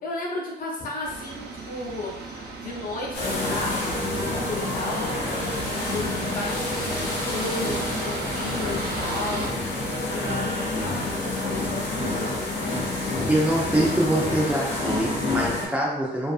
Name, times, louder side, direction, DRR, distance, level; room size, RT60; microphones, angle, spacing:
voice 1, 0.0-5.0 5.4-9.6 10.1-12.5, left 2 dB, 50° left, -3 dB, 0.6 m, -34 dB
sound 1, 1.0-9.5, right 3 dB, 70° right, 0.5 m, -36 dB
sound 2, 3.1-15.7, left 2 dB, 85° left, 0.8 m, -28 dB
voice 2, 13.3-16.3, right 1 dB, 5° right, -5 dB, 0.4 m, -24 dB
2.5 x 2.4 x 2.4 m, 0.83 s
cardioid pair, 150°, 18 cm